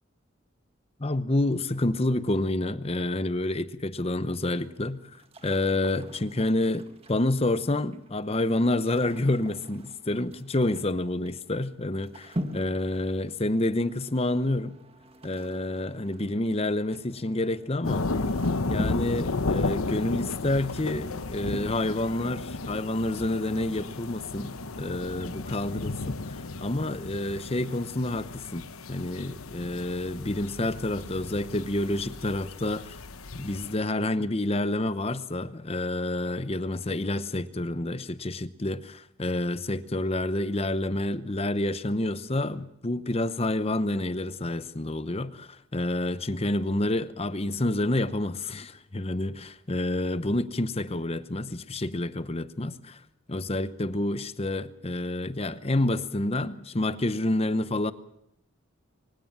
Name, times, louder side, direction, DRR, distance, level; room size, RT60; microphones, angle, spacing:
voice 1, 1.0-5.0 5.4-14.8 15.2-18.1 18.7-28.6 28.9-33.0 33.4-53.0 53.3-57.9, left 1 dB, 30° left, 0.8 m, -28 dB
sound 1, 4.4-21.3, equal, 30° right, 1.7 m, -44 dB
sound 2, 17.8-33.7, left 3 dB, 90° left, 1.1 m, -33 dB
24.0 x 17.0 x 7.4 m
head